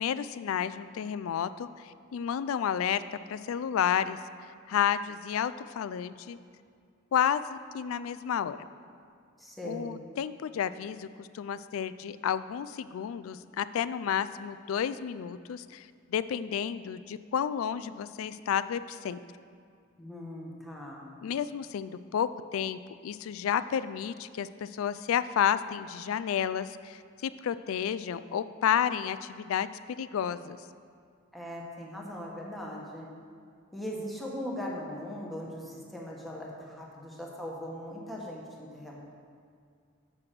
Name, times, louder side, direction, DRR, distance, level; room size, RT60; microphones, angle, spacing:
voice 1, 0.0-3.0 3.3-4.2 4.7-6.4 7.1-8.6 9.6-19.2 21.2-30.6, left 8 dB, 90° left, 14 dB, 0.3 m, -31 dB
voice 2, 9.4-10.0 20.0-21.1 31.3-33.1 33.7-39.0, equal, ahead, -3 dB, 1.1 m, -39 dB
7.4 x 5.9 x 6.6 m, 2.2 s
head